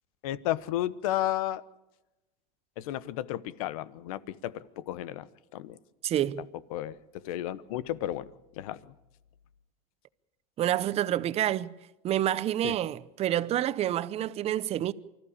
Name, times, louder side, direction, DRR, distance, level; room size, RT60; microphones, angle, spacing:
voice 1, 0.2-1.6 2.8-5.8 6.7-7.0 7.2-8.8 12.6-12.8, left 13 dB, 80° left, 1.0 m, -33 dB
voice 2, 6.0-6.4 10.6-11.7 12.0-14.9, right 12 dB, 35° right, 0.8 m, -28 dB
24.5 x 14.5 x 8.6 m
supercardioid pair, 130°, 18 cm